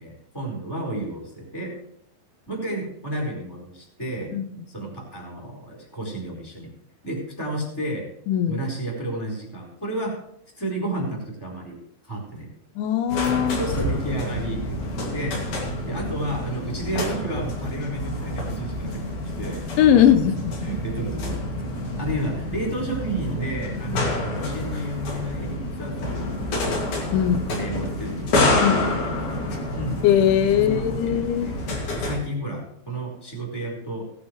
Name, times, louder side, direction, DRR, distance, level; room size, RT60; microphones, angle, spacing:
voice 1, 0.0-1.8 2.5-4.4 4.7-6.7 7.0-8.1 8.5-10.2 10.6-11.8 12.0-12.5 13.5-15.5 15.8-19.1 19.4-20.3 20.6-21.4 22.0-26.7 27.2-29.2 29.7-30.0 30.6-31.6 31.9-34.1, right 1 dB, 5° left, -3 dB, 4.0 m, -32 dB
voice 2, 8.3-8.6 12.8-13.6 19.8-20.5 23.9-24.2 27.1-27.4 28.6-28.9 30.0-31.5, left 10 dB, 85° left, 9 dB, 3.3 m, -20 dB
sound 1, 13.1-32.2, left 2 dB, 50° left, 3.4 m, -28 dB
18.5 x 11.5 x 3.2 m, 0.72 s
omnidirectional pair, 5.3 m